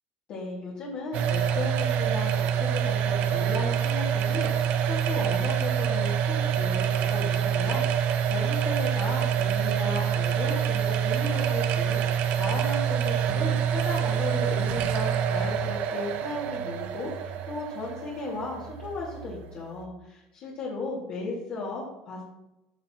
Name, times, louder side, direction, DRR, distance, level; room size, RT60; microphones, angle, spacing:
voice 1, 0.3-22.2, left 3 dB, 40° left, -5 dB, 2.0 m, -35 dB
sound 1, 1.1-19.9, right 8 dB, 50° right, 0.7 m, -26 dB
13.5 x 6.6 x 2.9 m, 0.90 s
cardioid pair, 180°, 3 cm